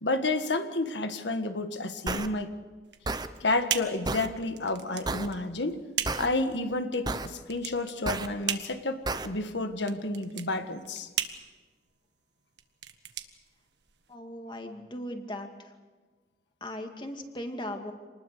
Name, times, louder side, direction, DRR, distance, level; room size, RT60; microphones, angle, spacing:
voice 1, 0.0-2.5 3.4-5.8 6.2-11.1, left 2 dB, 90° left, 8 dB, 1.7 m, -30 dB
sound 1, 2.1-2.3 3.1-3.3 4.1-4.3 5.1-5.3 6.1-6.3 7.1-7.3 8.1-8.3 9.1-9.3, right 3 dB, 25° right, 0.9 m, -31 dB
sound 2, 2.8-14.1, right 10 dB, 80° right, 1.5 m, -37 dB
voice 2, 14.1-15.5 16.6-17.9, left 1 dB, 25° left, 5 dB, 2.3 m, -38 dB
27.5 x 20.0 x 6.8 m, 1.3 s
head